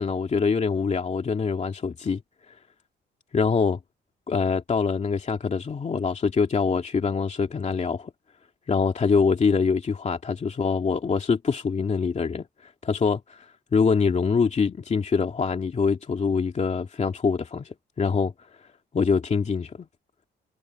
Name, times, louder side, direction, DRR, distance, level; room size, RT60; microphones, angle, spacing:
voice 1, 0.0-2.2 3.3-3.8 4.3-8.1 8.7-18.3 18.9-19.9, left 5 dB, 40° left, 2.4 m, -24 dB
cardioid pair, 100°, 19 cm